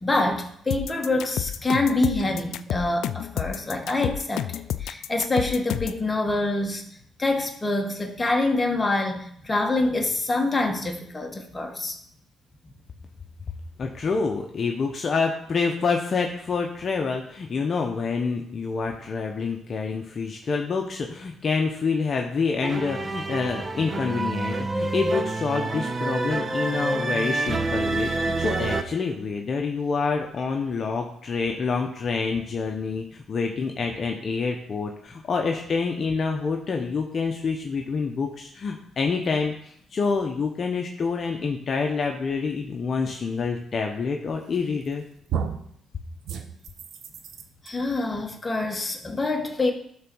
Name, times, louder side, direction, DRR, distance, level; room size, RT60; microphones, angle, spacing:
voice 1, 0.0-4.5 4.8-6.8 7.2-12.0 47.6-49.7, left 2 dB, 20° left, 2 dB, 1.6 m, -25 dB
sound 1, 0.7-6.0, left 11 dB, 80° left, 0.3 m, -30 dB
voice 2, 13.8-45.0, left 4 dB, 45° left, 2 dB, 0.9 m, -27 dB
sound 2, 22.6-28.8, right 2 dB, 30° right, 0.9 m, -27 dB
sound 3, 44.5-44.9 45.3-45.7 46.3-47.7, right 7 dB, 75° right, 0.9 m, -32 dB
11.0 x 4.0 x 6.2 m, 0.68 s
cardioid pair, 90°, 0 cm